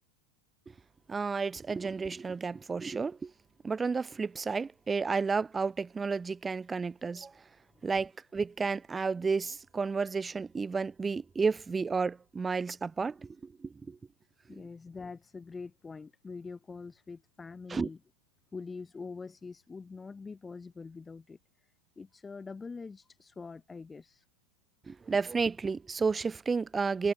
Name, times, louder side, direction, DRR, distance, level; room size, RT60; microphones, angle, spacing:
voice 1, 1.1-3.3 3.6-7.3 7.8-14.0 14.5-14.6 17.7-17.9 24.9-27.1, right 4 dB, 15° right, 0.8 m, -32 dB
voice 2, 14.5-18.0 18.5-21.4 22.0-24.2, left 4 dB, 15° left, 2.0 m, -44 dB
figure-of-eight pair, 90°, 0 cm